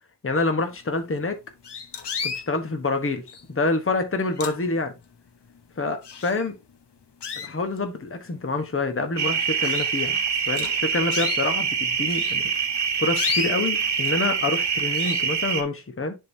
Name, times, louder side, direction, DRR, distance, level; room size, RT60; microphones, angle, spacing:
voice 1, 0.2-1.4 2.2-3.2 3.5-4.9 5.8-6.5 7.4-10.2 10.5-12.5 13.0-16.2, left 3 dB, 30° left, 1.1 m, -27 dB
sound 1, 1.0-1.1 1.6-2.5 3.3-3.6 4.1-5.0 5.5-5.6 6.0-6.7 7.2-7.9 8.5-8.6 9.1-9.2 9.6-9.9 10.5-11.4 12.1-14.2 14.5-14.7 14.9-15.3, left 6 dB, 80° left, 0.9 m, -33 dB
sound 2, 9.2-15.6, right 6 dB, 80° right, 1.1 m, -25 dB
10.5 x 3.7 x 2.7 m
wide cardioid pair, 95°, 41 cm